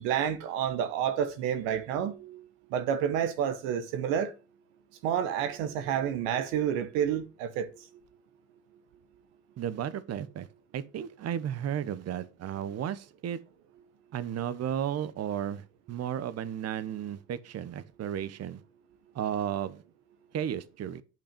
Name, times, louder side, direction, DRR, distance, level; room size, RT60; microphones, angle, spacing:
voice 1, 0.0-2.4 2.7-4.3 5.0-7.7, right 9 dB, 75° right, 0.9 m, -29 dB
voice 2, 9.6-10.5 10.7-13.4 14.1-18.6 19.1-19.8 20.3-21.0, right 9 dB, 50° right, 1.0 m, -34 dB
8.5 x 6.1 x 5.1 m
hypercardioid pair, 55°, 32 cm